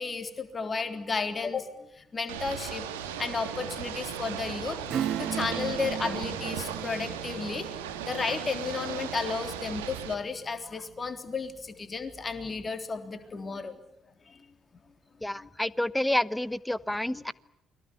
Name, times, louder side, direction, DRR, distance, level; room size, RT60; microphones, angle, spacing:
voice 1, 0.0-2.9 3.2-4.8 5.2-7.7 8.0-13.8 14.3-14.4 15.4-15.5 17.1-17.2, left 4 dB, 35° left, 7 dB, 3.6 m, -33 dB
Ocean / Boat Water vehicle, 2.3-10.1, right 9 dB, 80° right, 2.6 m, -37 dB
sound 1, 2.5-7.6, left 6 dB, 60° left, 5.9 m, -51 dB
Acoustic guitar / Strum, 4.9-11.1 11.5-11.6, right 9 dB, 55° right, 1.6 m, -37 dB
voice 2, 15.2-17.3, left 1 dB, 10° left, 19 dB, 1.1 m, -29 dB
29.5 x 22.5 x 8.5 m, 0.83 s
hypercardioid pair, 45°, 0 cm